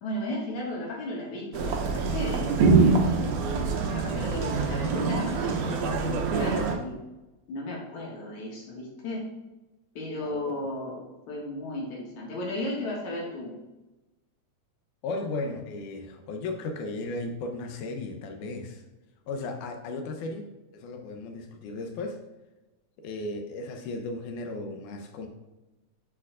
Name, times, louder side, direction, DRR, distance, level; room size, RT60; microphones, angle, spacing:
voice 1, 0.0-3.2 3.8-7.0 7.5-9.2 9.9-13.5, left 1 dB, 75° left, -3 dB, 3.0 m, -35 dB
sound 1, 1.5-6.8, right 4 dB, 85° right, 2.2 m, -25 dB
voice 2, 15.0-18.8 19.3-20.5 20.7-22.2 23.0-25.3, left 2 dB, 90° left, 4 dB, 2.3 m, -35 dB
8.6 x 5.9 x 2.5 m, 1.0 s
omnidirectional pair, 3.5 m